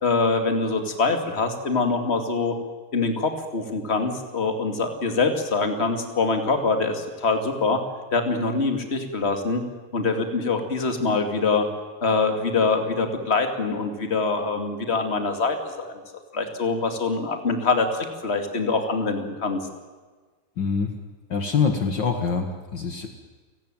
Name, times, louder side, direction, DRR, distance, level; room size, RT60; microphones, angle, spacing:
voice 1, 0.0-2.5 2.9-7.8 8.1-9.6 9.9-11.7 12.0-15.9 16.3-19.6, left 4 dB, 30° left, 6 dB, 2.6 m, -24 dB
voice 2, 20.6-20.9 21.3-23.1, left 5 dB, 55° left, 6 dB, 2.3 m, -25 dB
30.0 x 18.5 x 9.1 m, 1.4 s
omnidirectional pair, 2.4 m